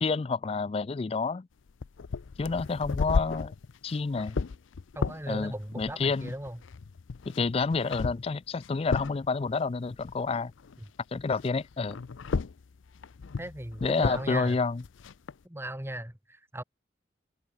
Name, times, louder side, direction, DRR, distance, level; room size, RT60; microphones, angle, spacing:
voice 1, 0.0-1.5 2.4-3.5 3.8-4.4 5.3-6.3 7.4-10.5 11.1-12.0 13.8-14.8, left 4 dB, 30° left, 0.4 m, -29 dB
sound 1, 1.7-10.9 11.1-15.3, left 4 dB, 85° left, 0.5 m, -35 dB
voice 2, 4.9-6.6 13.4-14.6 15.4-16.6, right 1 dB, 15° right, 1.9 m, -37 dB
head